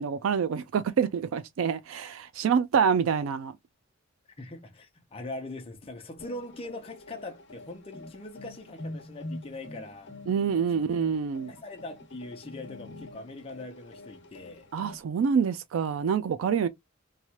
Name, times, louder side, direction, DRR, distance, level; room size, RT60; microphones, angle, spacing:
voice 1, 0.0-3.5 10.3-11.5 14.7-16.7, right 6 dB, 75° right, 0.3 m, -26 dB
voice 2, 4.4-10.1 11.5-14.7, left 2 dB, 30° left, 0.7 m, -41 dB
sound 1, 6.2-15.0, left 2 dB, 60° left, 1.0 m, -45 dB
3.1 x 2.3 x 2.8 m
head